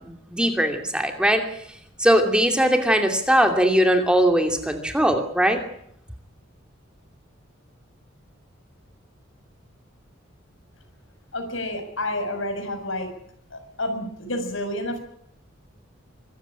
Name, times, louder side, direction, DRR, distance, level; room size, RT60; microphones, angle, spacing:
voice 1, 0.0-1.4 2.0-5.6, equal, 5° right, 5 dB, 2.6 m, -20 dB
voice 2, 11.3-13.1 13.5-15.0, left 1 dB, 80° left, 7 dB, 6.2 m, -29 dB
24.5 x 15.0 x 10.0 m, 0.71 s
head